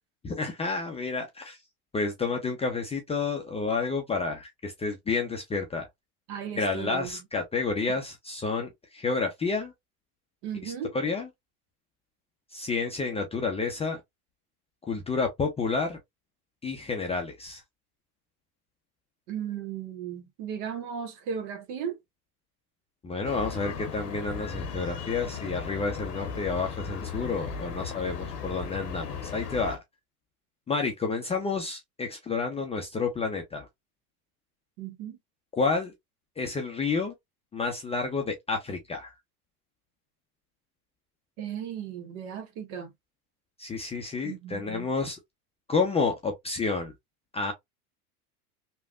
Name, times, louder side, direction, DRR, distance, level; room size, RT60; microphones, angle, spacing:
voice 1, 0.2-1.6 1.9-5.9 6.6-9.7 10.6-11.3 12.5-14.0 14.9-16.0 16.6-17.6 23.0-29.8 30.7-33.7 35.6-35.9 36.4-37.1 37.5-39.1 43.6-45.2 45.7-46.9 47.3-47.5, left 4 dB, 15° left, 0.4 m, -30 dB
voice 2, 6.3-7.2 10.4-10.9 19.3-22.0 34.8-35.2 41.4-42.9 44.2-44.9, right 8 dB, 60° right, 1.1 m, -36 dB
sound 1, 23.2-29.8, left 6 dB, 90° left, 0.9 m, -37 dB
3.2 x 2.3 x 2.3 m
hypercardioid pair, 95°, 46 cm